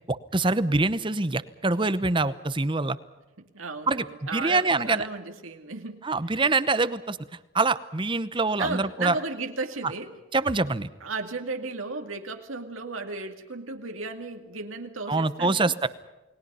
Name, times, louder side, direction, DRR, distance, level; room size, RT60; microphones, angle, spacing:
voice 1, 0.1-3.0 3.9-4.0 4.3-5.0 6.0-7.2 7.5-9.2 10.3-10.9 15.1-15.9, right 3 dB, 25° right, 15 dB, 0.8 m, -25 dB
voice 2, 3.4-6.0 6.3-6.4 8.6-10.1 11.0-15.7, right 3 dB, 80° right, 5 dB, 2.3 m, -34 dB
29.5 x 20.5 x 5.6 m, 1.1 s
head